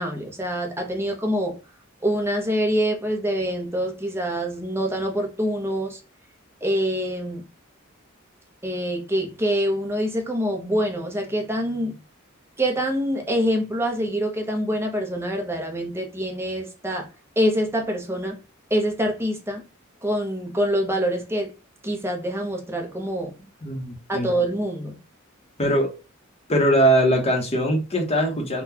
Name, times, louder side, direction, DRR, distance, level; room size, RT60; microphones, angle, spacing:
voice 1, 0.0-1.6 2.0-6.0 6.6-7.5 8.6-12.0 12.6-17.1 17.4-18.4 18.7-19.7 20.0-21.5 21.8-23.3 24.1-24.9, equal, 10° right, 0.8 m, -25 dB
voice 2, 23.6-24.3 25.6-25.9 26.5-28.6, right 1 dB, 30° left, 0.9 m, -21 dB
3.8 x 2.3 x 2.7 m
head